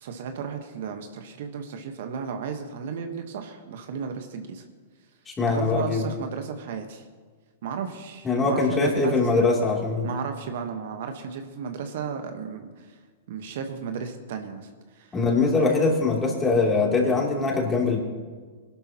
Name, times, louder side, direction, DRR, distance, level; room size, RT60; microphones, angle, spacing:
voice 1, 0.0-4.6 5.5-7.0 7.6-9.5 10.0-12.9 13.3-14.7 15.0-15.1 15.6-15.9, right 6 dB, 65° right, 6 dB, 1.3 m, -34 dB
voice 2, 5.3-6.1 8.2-10.1 15.1-18.0, left 3 dB, 20° left, -1 dB, 3.1 m, -22 dB
21.5 x 11.5 x 3.0 m, 1.5 s
hypercardioid pair, 115°, 0 cm